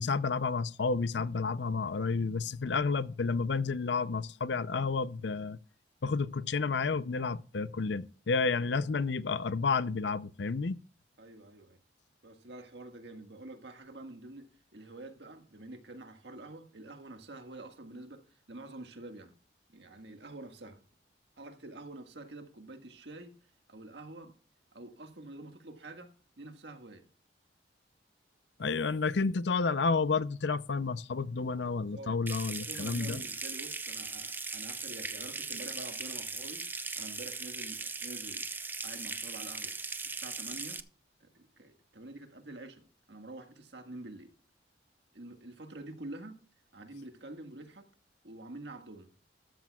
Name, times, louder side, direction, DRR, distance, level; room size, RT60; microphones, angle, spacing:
voice 1, 0.0-5.6 6.0-10.8 28.6-33.2, left 4 dB, 75° left, 0.6 m, -31 dB
voice 2, 11.2-11.8 12.2-19.3 19.7-20.8 21.4-23.4 23.7-24.3 24.7-27.1 31.9-32.1 32.6-36.7 36.9-38.5 38.8-39.8 40.0-40.8 41.2-44.3 45.1-46.4 46.7-47.9 48.2-49.1, right 2 dB, 70° right, 1.7 m, -47 dB
Water tap faucet / Sink (filling or washing) / Trickle dribble, 32.3-40.8, right 4 dB, 10° right, 0.5 m, -39 dB
13.5 x 12.0 x 2.4 m
head